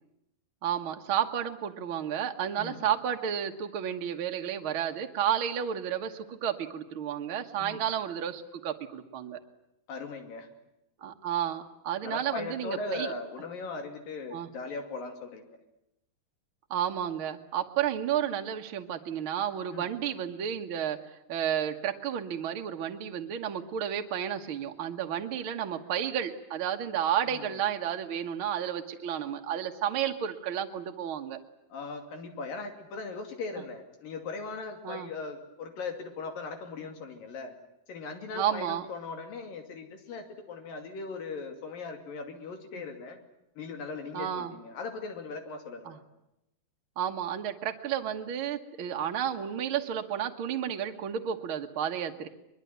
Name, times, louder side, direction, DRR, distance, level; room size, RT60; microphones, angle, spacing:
voice 1, 0.6-9.4 11.0-13.1 14.3-14.5 16.7-21.0 21.3-31.4 34.8-35.1 38.3-38.8 44.1-44.5 45.8-46.0 47.0-52.3, right 9 dB, 50° right, 4 dB, 1.7 m, -32 dB
voice 2, 2.6-2.9 7.6-7.9 9.9-10.5 12.0-15.6 19.7-19.9 27.3-27.5 31.7-37.5 37.9-43.2 43.6-46.0, left 4 dB, 80° left, 5 dB, 4.4 m, -39 dB
23.0 x 22.5 x 9.4 m, 0.86 s
omnidirectional pair, 3.9 m